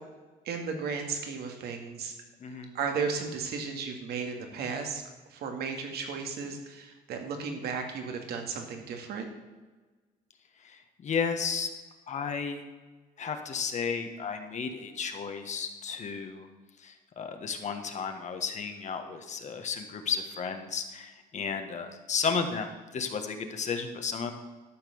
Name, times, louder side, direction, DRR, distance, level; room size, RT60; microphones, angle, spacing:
voice 1, 0.4-2.1 2.5-5.0 5.3-9.3, right 5 dB, 70° right, 4 dB, 2.2 m, -34 dB
voice 2, 2.4-2.7 10.6-11.7 12.1-12.6 13.2-16.5 16.8-24.3, left 5 dB, 45° left, 6 dB, 1.5 m, -33 dB
12.5 x 5.9 x 7.0 m, 1.3 s
cardioid pair, 110°, 17 cm